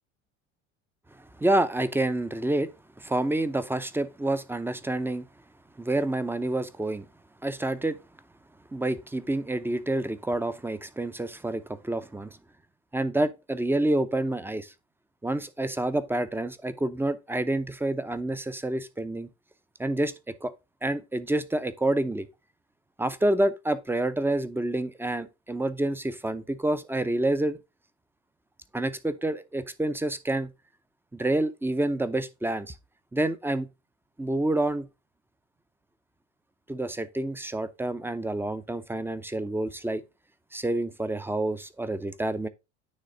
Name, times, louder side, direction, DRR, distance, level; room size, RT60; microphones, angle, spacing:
voice 1, 1.4-2.7 3.0-5.3 5.8-7.1 7.4-8.0 8.7-12.3 12.9-14.7 15.2-19.3 19.8-20.1 20.4-20.5 20.8-22.3 23.0-27.6 28.7-30.5 31.1-32.7 33.1-33.7 34.2-34.9 36.7-40.0 40.5-42.5, right 1 dB, 5° right, 0.6 m, -28 dB
9.6 x 3.2 x 3.8 m
hypercardioid pair, 80°, 35 cm